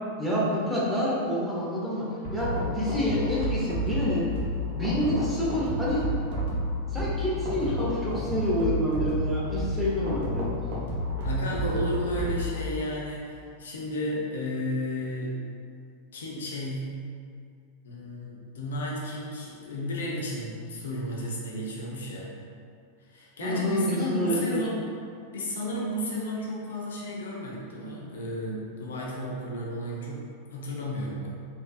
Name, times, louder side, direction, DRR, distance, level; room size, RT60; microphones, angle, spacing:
voice 1, 0.2-4.3 4.7-6.0 6.9-10.5 23.4-24.6, equal, ahead, -8 dB, 1.0 m, -28 dB
sound 1, 2.2-12.6, left 1 dB, 50° right, 0.9 m, -30 dB
voice 2, 11.2-15.4 16.1-16.9 17.8-22.4 23.1-24.8 25.3-31.3, equal, 65° left, -3 dB, 0.6 m, -33 dB
4.3 x 2.7 x 2.4 m, 2.3 s
figure-of-eight pair, 90°, 0 cm